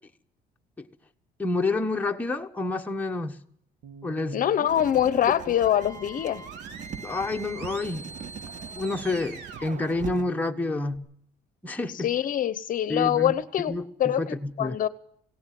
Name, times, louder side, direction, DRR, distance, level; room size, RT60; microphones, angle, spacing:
voice 1, 1.4-3.4 4.0-4.4 7.0-8.0 8.8-11.0 11.6-12.1 12.9-13.4 13.7-14.8, left 2 dB, 10° left, 1.4 m, -29 dB
sound 1, 3.8-11.0, right 4 dB, 90° right, 2.9 m, -43 dB
voice 2, 4.3-6.4 11.9-13.7 14.0-14.9, left 10 dB, 50° left, 0.8 m, -24 dB
Writing, 4.7-10.2, right 8 dB, 45° right, 0.8 m, -42 dB
21.0 x 17.5 x 7.6 m
cardioid pair, 110°, 17 cm